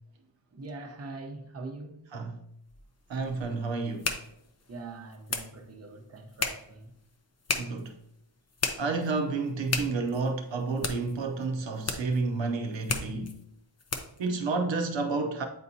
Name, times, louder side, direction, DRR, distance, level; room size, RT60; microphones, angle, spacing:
voice 1, 0.5-2.1 4.7-6.9, right 3 dB, 35° right, 0.8 m, -43 dB
sound 1, 2.7-14.3, left 4 dB, 35° left, 0.6 m, -37 dB
voice 2, 3.1-4.2 7.6-8.0 8.8-13.4 14.2-15.4, right 3 dB, 75° right, 0.8 m, -30 dB
8.3 x 4.2 x 2.7 m
wide cardioid pair, 105°, 45 cm